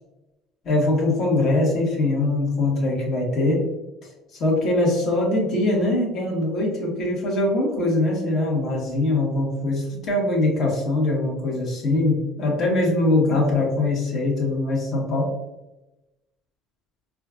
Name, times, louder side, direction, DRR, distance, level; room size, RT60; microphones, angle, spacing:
voice 1, 0.6-3.6 4.4-15.3, left 2 dB, 55° left, -2 dB, 1.3 m, -22 dB
4.3 x 2.4 x 2.4 m, 0.96 s
supercardioid pair, 100°, 0 cm